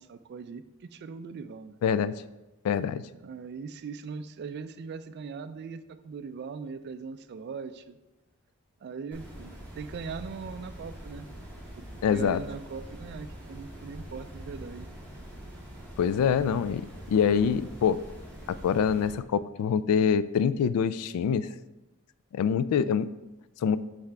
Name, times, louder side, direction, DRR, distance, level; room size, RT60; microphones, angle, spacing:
voice 1, 0.0-1.8 3.2-8.0 8.8-11.3 11.8-14.9, right 5 dB, 50° right, 12 dB, 0.3 m, -40 dB
voice 2, 1.8-2.1 2.6-3.0 12.0-12.4 16.0-18.0 18.5-21.5 22.3-23.1 23.6-23.8, left 7 dB, 80° left, 16 dB, 0.3 m, -25 dB
sound 1, 9.1-19.1, equal, 10° left, 1.9 m, -44 dB
5.8 x 5.6 x 3.3 m, 1.1 s
head